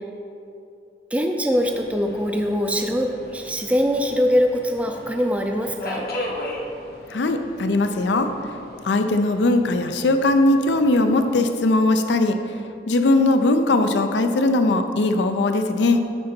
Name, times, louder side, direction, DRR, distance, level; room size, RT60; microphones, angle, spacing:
voice 1, 1.1-6.1, equal, 10° right, 3 dB, 0.4 m, -22 dB
Subway metro underground, 1.5-11.4, left 1 dB, 60° left, 1.0 m, -37 dB
voice 2, 7.1-8.3 8.8-12.4 12.9-16.0, left 2 dB, 90° left, 7 dB, 0.5 m, -19 dB
8.9 x 3.8 x 4.4 m, 2.6 s
head